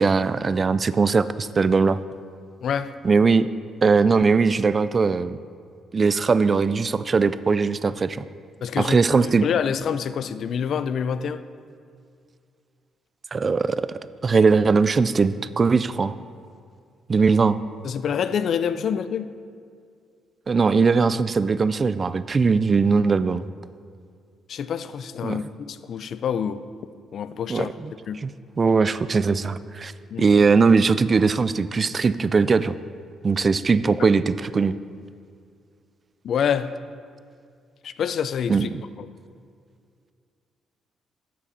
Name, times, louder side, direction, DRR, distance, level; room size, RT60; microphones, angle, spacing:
voice 1, 0.0-2.0 3.0-3.5 3.8-5.4 5.9-8.2 8.8-9.5 13.3-13.9 14.2-16.1 17.1-17.6 20.5-23.4 25.2-25.4 27.5-27.9 28.2-28.3 28.6-29.9 30.2-32.8 33.2-34.8 38.5-38.7, right 4 dB, 35° right, 15 dB, 0.3 m, -20 dB
voice 2, 2.6-3.0 8.6-9.0 9.2-11.4 17.8-19.3 24.5-26.6 27.1-27.7 28.1-28.2 30.1-30.3 36.2-36.7 37.8-38.7 39.0-39.1, left 7 dB, 65° left, 13 dB, 0.4 m, -26 dB
11.5 x 7.4 x 4.2 m, 2.3 s
cardioid pair, 90°, 0 cm